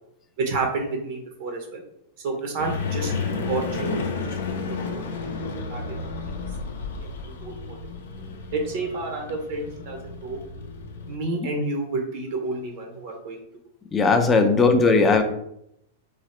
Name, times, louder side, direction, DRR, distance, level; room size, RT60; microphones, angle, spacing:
voice 1, 0.4-1.8 2.2-4.3 4.7-5.1 5.7-5.8 6.2-6.3 7.0-7.8 8.5-10.4 11.1-13.4 14.3-14.4, right 3 dB, 60° right, 2 dB, 0.5 m, -30 dB
sound 1, 2.6-11.2, left 4 dB, 80° left, 0.4 m, -32 dB
voice 2, 13.9-15.2, left 4 dB, 20° left, 6 dB, 0.4 m, -18 dB
3.1 x 2.0 x 2.9 m, 0.78 s
hypercardioid pair, 125°, 0 cm